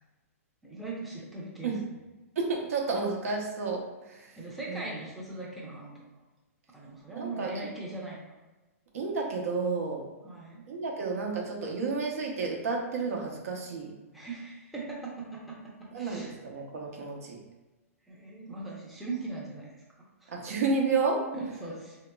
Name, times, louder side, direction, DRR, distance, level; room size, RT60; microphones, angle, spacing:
voice 1, 0.6-1.7 4.4-6.0 6.7-8.3 10.2-10.7 14.1-16.3 18.1-20.3 21.3-22.0, right 3 dB, ahead, -6 dB, 0.5 m, -40 dB
voice 2, 2.4-4.3 4.7-4.8 7.1-7.7 8.9-10.0 10.7-13.9 15.9-17.4 20.3-21.2, right 4 dB, 70° right, -1 dB, 0.8 m, -31 dB
3.9 x 2.8 x 2.2 m, 1.1 s
hypercardioid pair, 150°, 8 cm